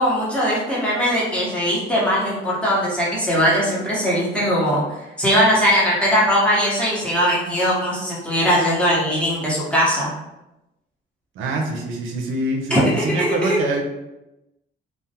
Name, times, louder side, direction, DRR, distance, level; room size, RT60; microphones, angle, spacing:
voice 1, 0.0-4.8 5.2-10.1 12.7-13.6, equal, 5° left, -6 dB, 0.9 m, -20 dB
voice 2, 11.4-13.8, right 2 dB, 90° right, 1 dB, 0.4 m, -24 dB
2.3 x 2.1 x 2.7 m, 0.95 s
cardioid pair, 90°, 20 cm